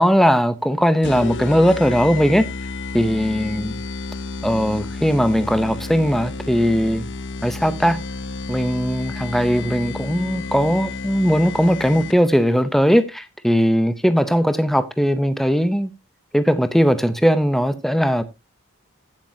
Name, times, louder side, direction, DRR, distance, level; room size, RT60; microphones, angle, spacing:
voice 1, 0.0-2.5 2.9-3.8 4.4-7.1 7.4-8.0 8.5-15.9 16.3-18.2, equal, ahead, 0.6 m, -19 dB
sound 1, 1.0-12.4, left 3 dB, 55° left, 0.7 m, -31 dB
16.5 x 7.4 x 2.7 m
head